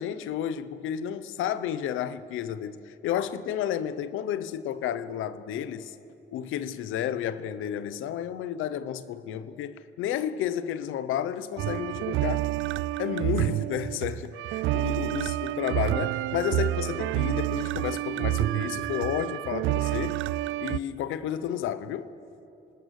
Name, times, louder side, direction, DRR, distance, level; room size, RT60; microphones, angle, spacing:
voice 1, 0.0-6.0 6.3-12.5 13.0-20.2 20.6-22.1, left 10 dB, 90° left, 0.9 m, -31 dB
sound 1, 11.6-20.8, right 16 dB, 85° right, 0.4 m, -29 dB
26.5 x 19.5 x 6.6 m
cardioid pair, 90°, 20 cm